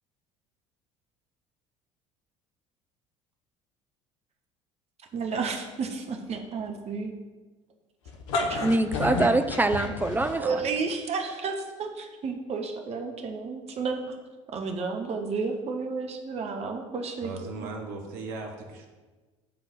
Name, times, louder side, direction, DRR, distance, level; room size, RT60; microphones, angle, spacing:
voice 1, 5.1-7.1 8.5-8.6 10.3-14.1 14.5-17.3 17.6-17.7, right 4 dB, 40° right, 4 dB, 1.2 m, -32 dB
sound 1, 8.1-10.7, left 3 dB, 75° left, 1.0 m, -30 dB
voice 2, 8.6-10.6, right 2 dB, 10° right, 8 dB, 0.7 m, -24 dB
voice 3, 17.2-18.9, right 3 dB, 65° right, 2 dB, 1.4 m, -37 dB
8.7 x 3.8 x 6.5 m, 1.3 s
hypercardioid pair, 65°, 16 cm